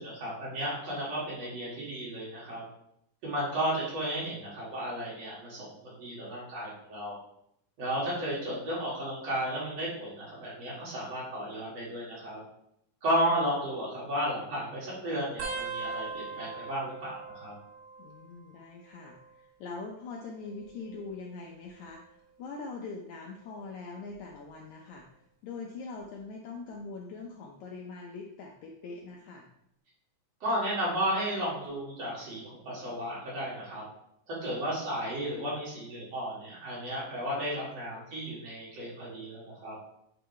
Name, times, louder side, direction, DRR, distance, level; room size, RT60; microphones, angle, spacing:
voice 1, 0.0-2.6 3.2-7.2 7.8-12.4 13.0-17.6 30.4-33.9 34.3-39.7, equal, 50° right, -7 dB, 3.3 m, -33 dB
sound 1, 15.4-18.6 18.9-19.5 20.4-21.9 22.5-22.9 24.1-24.5 26.0-26.1, right 4 dB, 85° right, 1.1 m, -41 dB
voice 2, 18.0-25.0 25.4-29.5, left 4 dB, 75° left, 0 dB, 1.8 m, -42 dB
8.9 x 4.4 x 3.1 m, 0.75 s
omnidirectional pair, 3.9 m